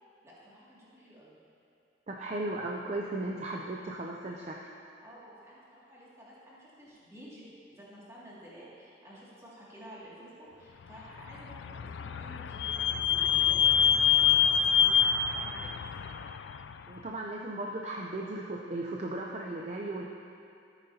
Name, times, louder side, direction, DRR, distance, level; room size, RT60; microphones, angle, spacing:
voice 1, 0.2-1.4 5.0-15.7 16.0-16.2, equal, 15° right, -8 dB, 2.3 m, -51 dB
voice 2, 2.1-4.6 16.9-20.0, right 2 dB, 40° right, -1 dB, 0.5 m, -36 dB
Vehicle / Squeak, 11.2-16.8, left 8 dB, 80° left, 0.3 m, -26 dB
13.5 x 9.0 x 2.8 m, 2.6 s
head